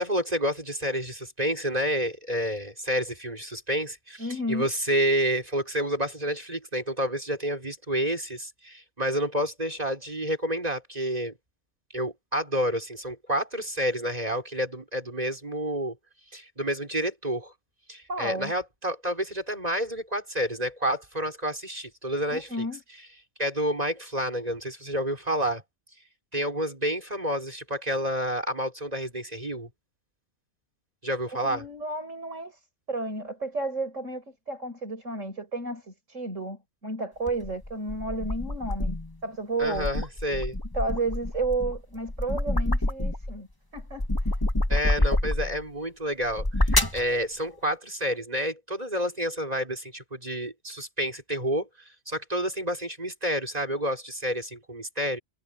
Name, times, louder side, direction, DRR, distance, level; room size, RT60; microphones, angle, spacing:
voice 1, 0.0-11.3 11.9-16.0 16.3-17.5 17.9-22.7 23.4-25.6 26.3-29.7 31.0-31.6 39.6-40.6 44.7-51.7 52.1-55.2, equal, 30° right, 5.2 m, -29 dB
voice 2, 4.2-4.7 18.1-18.5 22.3-22.8 31.4-32.6 32.9-39.0 39.2-39.9 40.7-43.5 43.7-44.4, right 2 dB, 75° right, 5.8 m, -32 dB
sound 1, 37.3-39.1 39.6-43.4 43.8-45.6 46.2-47.1, left 1 dB, 15° left, 1.7 m, -27 dB
omnidirectional pair, 1.3 m